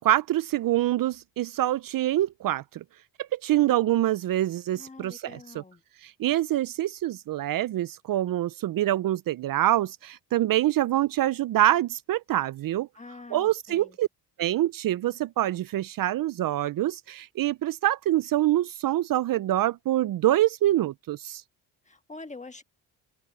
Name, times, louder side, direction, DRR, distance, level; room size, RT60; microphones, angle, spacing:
voice 1, 0.0-2.8 3.2-5.3 6.0-12.9 13.3-14.1 14.4-21.4, right 14 dB, 55° right, 0.5 m, -25 dB
voice 2, 4.7-5.8 12.9-14.0 21.8-22.6, left 3 dB, 15° left, 1.5 m, -45 dB
cardioid pair, 85°, 40 cm